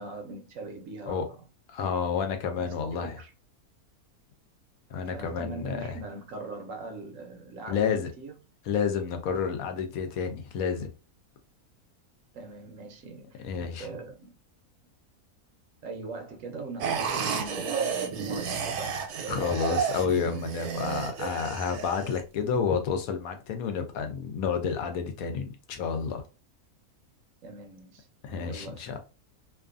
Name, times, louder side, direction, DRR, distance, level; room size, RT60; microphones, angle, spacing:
voice 1, 0.0-1.4 2.6-3.3 5.1-8.3 12.3-13.5 13.8-14.4 15.8-19.1 27.4-28.1 28.4-29.0, right 3 dB, 70° right, 0.9 m, -41 dB
voice 2, 1.7-3.1 4.9-5.8 7.7-8.1 8.7-10.9 13.4-13.9 19.3-26.2 28.2-29.0, left 6 dB, 75° left, 1.0 m, -30 dB
sound 1, 16.8-22.2, right 6 dB, 90° right, 1.1 m, -31 dB
2.6 x 2.4 x 2.4 m
omnidirectional pair, 1.6 m